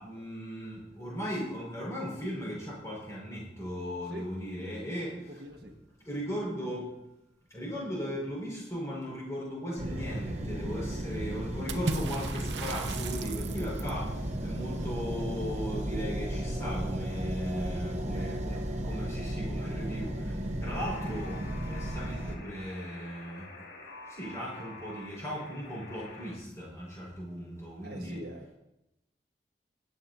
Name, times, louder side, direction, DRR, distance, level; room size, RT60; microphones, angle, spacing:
voice 1, 0.0-5.4 6.0-6.9 7.5-23.5 24.1-28.2, equal, 15° left, 5.5 m, -37 dB
voice 2, 5.4-5.7 18.1-18.6 27.8-28.5, equal, 65° right, 1.6 m, -44 dB
sound 1, 9.8-22.4, right 1 dB, 40° right, 1.0 m, -34 dB
Water / Splash splatter, 11.7-14.1, right 3 dB, 85° right, 0.8 m, -36 dB
Alarm, 20.6-26.3, left 3 dB, 85° left, 2.6 m, -48 dB
22.0 x 9.0 x 2.8 m
head